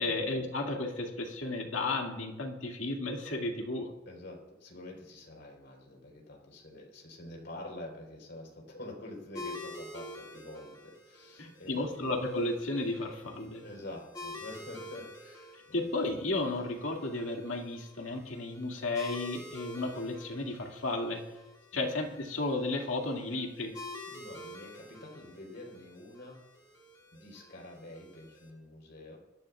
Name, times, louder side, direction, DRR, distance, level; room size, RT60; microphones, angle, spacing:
voice 1, 0.0-3.9 11.4-13.6 15.7-21.2 21.7-23.7, left 2 dB, 75° left, 1 dB, 2.2 m, -33 dB
voice 2, 4.1-12.0 13.6-15.9 21.7-21.9 24.1-26.4 27.1-29.2, left 1 dB, 60° left, 0 dB, 4.0 m, -47 dB
sound 1, 9.3-28.5, left 2 dB, 20° left, 2.2 m, -48 dB
21.5 x 13.0 x 2.4 m, 0.97 s
head